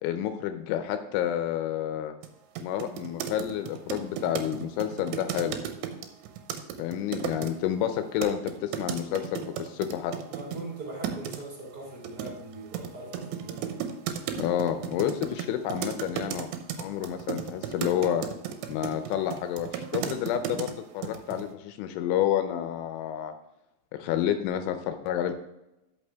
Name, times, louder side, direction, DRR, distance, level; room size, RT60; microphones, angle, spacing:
voice 1, 0.0-2.1 2.6-5.6 6.8-10.1 14.4-16.5 16.8-18.3 18.7-23.3 23.9-25.3, left 10 dB, 85° left, 8 dB, 3.1 m, -29 dB
sound 1, 2.2-2.3 2.6-7.5 8.2-10.6 11.0-11.4 12.0-20.7 21.0-21.5, right 9 dB, 80° right, 2.7 m, -34 dB
voice 2, 10.3-13.7, right 2 dB, 40° right, -3 dB, 1.4 m, -41 dB
12.0 x 5.5 x 3.4 m, 0.90 s
omnidirectional pair, 5.5 m